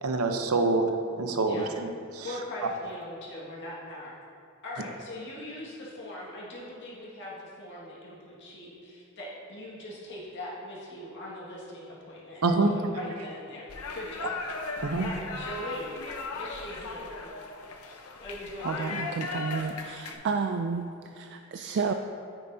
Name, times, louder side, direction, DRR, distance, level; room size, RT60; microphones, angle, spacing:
voice 1, 0.0-0.9 1.2-2.3 12.4-12.7 14.8-15.1, right 3 dB, 75° right, 5 dB, 0.7 m, -26 dB
voice 2, 2.2-4.2 4.6-14.3 15.0-16.0 16.3-17.3 17.8-19.0, left 1 dB, 55° left, -6 dB, 1.8 m, -41 dB
sound 1, 13.7-20.1, left 3 dB, 80° left, 0.7 m, -37 dB
voice 3, 18.6-21.9, right 5 dB, 55° right, 6 dB, 0.3 m, -31 dB
9.8 x 9.2 x 2.7 m, 2.6 s
head